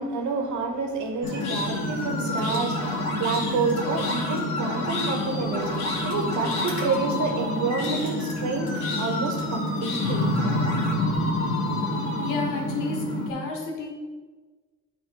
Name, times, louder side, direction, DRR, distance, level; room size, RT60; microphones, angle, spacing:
voice 1, 0.0-10.3, right 4 dB, 75° right, 4 dB, 1.3 m, -29 dB
sound 1, 1.2-13.3, left 2 dB, 65° left, 1.9 m, -27 dB
voice 2, 12.2-13.9, left 3 dB, 90° left, 0 dB, 1.7 m, -31 dB
9.5 x 3.6 x 4.8 m, 1.3 s
cardioid pair, 90°, 30 cm